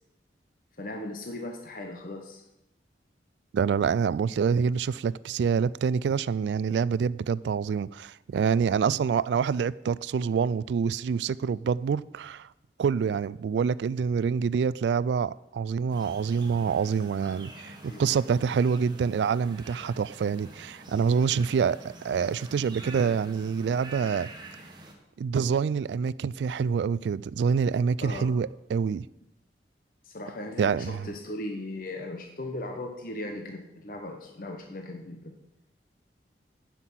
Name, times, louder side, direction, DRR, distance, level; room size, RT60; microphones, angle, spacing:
voice 1, 0.8-2.4 17.9-18.2 28.0-28.3 30.0-35.4, left 1 dB, 50° left, 1.0 m, -38 dB
voice 2, 3.5-12.5 12.8-24.3 25.2-29.1 30.6-31.1, right 6 dB, 80° right, 0.3 m, -26 dB
sound 1, 15.9-24.9, right 2 dB, 25° right, 1.5 m, -46 dB
9.8 x 5.9 x 7.5 m
head